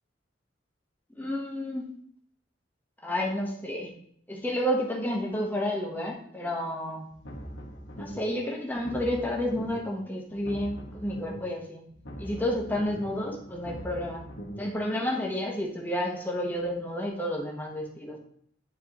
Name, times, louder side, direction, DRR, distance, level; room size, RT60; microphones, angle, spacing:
voice 1, 1.2-1.9 3.0-3.9 4.3-7.1 8.0-11.8 12.2-14.2 14.6-18.2, equal, 10° left, -1 dB, 1.1 m, -30 dB
sound 1, 7.1-8.4 8.7-10.0 10.3-11.6 11.9-14.7, equal, 80° left, 1.4 m, -42 dB
10.0 x 4.4 x 3.0 m, 0.64 s
head